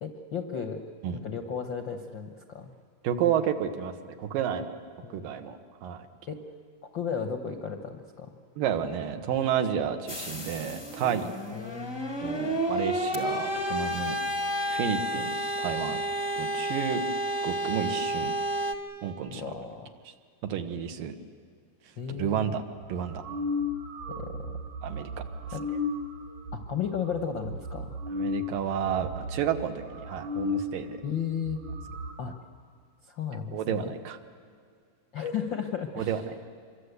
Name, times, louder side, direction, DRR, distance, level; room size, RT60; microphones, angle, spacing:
voice 1, 0.0-0.9 1.1-2.7 5.0-5.5 6.3-6.5 6.9-8.4 11.5-12.3 19.3-19.9 22.0-22.6 24.1-24.5 25.5-25.7 26.5-28.0 31.0-31.6 32.2-32.3 33.0-33.9 35.1-36.2, left 7 dB, 70° left, 5 dB, 1.1 m, -34 dB
voice 2, 3.0-4.8 5.1-6.1 8.6-11.3 12.2-14.2 14.7-15.3 15.6-16.0 16.4-17.0 17.4-18.3 19.0-19.5 20.5-21.2 22.1-22.6 22.9-23.2 24.8-25.2 28.1-31.0 33.5-34.2 36.0-36.2, right 8 dB, 85° right, 7 dB, 3.1 m, -31 dB
sound 1, 10.1-18.7, right 1 dB, 35° left, 0.4 m, -31 dB
sound 2, 22.8-30.7 31.0-31.1 31.4-32.1, left 3 dB, 65° right, 3.6 m, -35 dB
26.5 x 23.5 x 8.2 m, 2.2 s
omnidirectional pair, 3.8 m